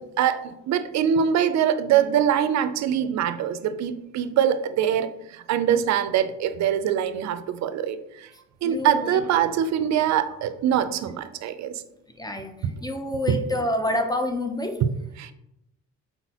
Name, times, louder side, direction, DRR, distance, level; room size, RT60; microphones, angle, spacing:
voice 1, 0.0-8.3 8.6-11.8 12.6-12.7 13.3-13.4 14.8-15.3, right 9 dB, 65° right, 12 dB, 0.4 m, -23 dB
voice 2, 8.6-9.2 12.2-12.5 12.8-14.7, left 1 dB, 15° left, 5 dB, 0.5 m, -27 dB
4.1 x 4.0 x 2.8 m, 0.87 s
cardioid pair, 90°, 30 cm